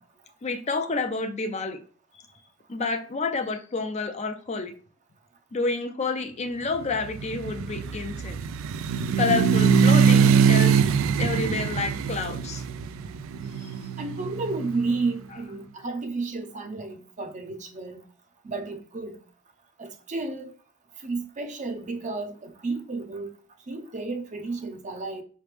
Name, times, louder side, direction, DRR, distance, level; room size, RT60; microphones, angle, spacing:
voice 1, 0.4-1.8 2.7-4.7 5.5-8.4 9.2-10.8 11.2-12.6 13.6-13.7, left 4 dB, 35° left, 0.5 m, -29 dB
sound 1, 6.9-14.9, right 6 dB, 85° right, 0.3 m, -22 dB
voice 2, 14.0-18.0 18.4-19.2 19.8-20.5 21.0-23.3 23.7-25.2, right 3 dB, 40° right, 0.6 m, -32 dB
5.0 x 3.2 x 3.2 m
head